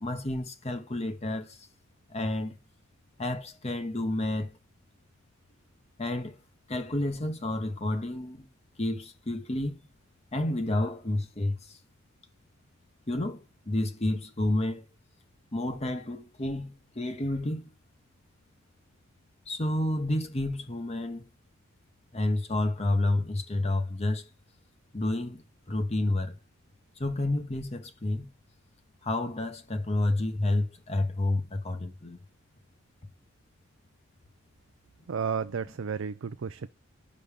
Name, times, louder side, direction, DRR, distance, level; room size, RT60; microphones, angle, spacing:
voice 1, 0.0-1.7 2.1-2.6 3.2-4.5 6.0-6.4 6.7-8.5 8.8-9.8 10.3-11.8 13.1-14.8 15.5-17.7 19.5-21.3 22.1-24.3 24.9-25.4 25.7-26.4 27.0-28.3 29.0-32.2, left 1 dB, 30° left, 1.0 m, -30 dB
voice 2, 35.1-36.7, right 6 dB, 65° right, 0.4 m, -32 dB
5.5 x 5.3 x 4.8 m
head